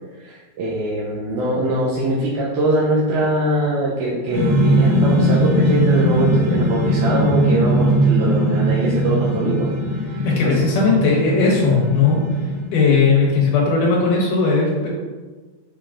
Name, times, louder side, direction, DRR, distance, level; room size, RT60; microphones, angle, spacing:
voice 1, 0.2-9.7 10.1-10.5, right 1 dB, 75° right, -5 dB, 2.2 m, -22 dB
sound 1, 4.3-12.9, right 1 dB, 45° right, 2.4 m, -19 dB
voice 2, 10.2-12.2 12.7-14.9, left 4 dB, 80° left, -4 dB, 2.8 m, -17 dB
7.0 x 4.8 x 3.7 m, 1.4 s
omnidirectional pair, 3.6 m